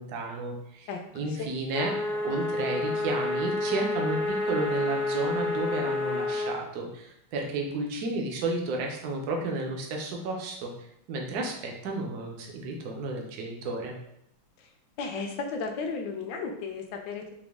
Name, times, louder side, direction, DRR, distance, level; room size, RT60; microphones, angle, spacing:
voice 1, 0.0-0.9 1.1-1.9 2.2-10.7 11.1-14.0, right 2 dB, 65° right, 1 dB, 1.0 m, -32 dB
voice 2, 0.9-1.5 14.6-14.7 15.0-17.2, left 4 dB, 70° left, 4 dB, 1.0 m, -34 dB
sound 1, 1.7-6.6, left 2 dB, 90° left, 1.7 m, -29 dB
5.0 x 2.2 x 3.4 m, 0.76 s
omnidirectional pair, 2.3 m